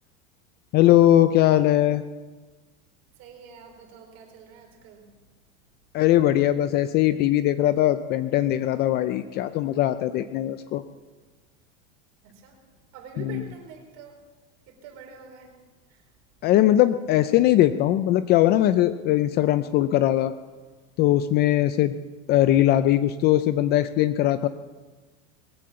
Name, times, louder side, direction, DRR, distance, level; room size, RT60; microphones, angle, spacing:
voice 1, 0.7-2.0 5.9-10.8 13.2-13.4 16.4-20.3 21.0-22.0 22.3-24.5, left 13 dB, 30° left, 12 dB, 0.4 m, -20 dB
voice 2, 3.2-5.1 12.2-12.6 12.9-14.2 14.7-15.5 15.9-16.1, right 6 dB, 45° right, 2 dB, 4.5 m, -45 dB
21.0 x 8.5 x 7.5 m, 1.3 s
supercardioid pair, 150°, 36 cm